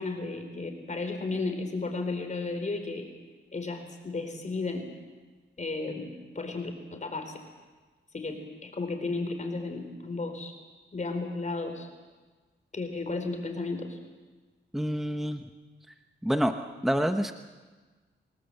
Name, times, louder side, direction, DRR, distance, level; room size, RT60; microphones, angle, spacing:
voice 1, 0.0-3.1 3.5-4.9 5.6-7.3 8.1-10.5 10.9-11.9 12.7-14.0, left 3 dB, 35° left, 5 dB, 4.3 m, -34 dB
voice 2, 14.7-15.5 16.2-16.5 16.8-17.3, equal, ahead, 6 dB, 1.0 m, -27 dB
27.0 x 19.0 x 7.9 m, 1.3 s
wide cardioid pair, 120°, 20 cm